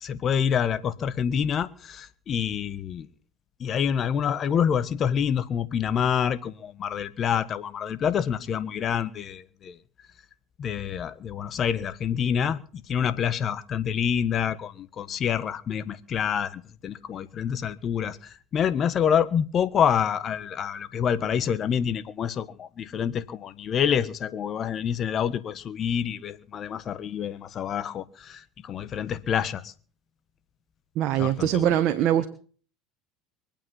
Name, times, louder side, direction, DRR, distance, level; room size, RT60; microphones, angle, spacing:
voice 1, 0.0-3.1 3.6-9.8 10.6-29.7 31.2-31.7, left 8 dB, 40° left, 1.3 m, -27 dB
voice 2, 30.9-32.3, right 11 dB, 55° right, 1.4 m, -22 dB
23.5 x 9.0 x 5.6 m
hypercardioid pair, 90°, 0 cm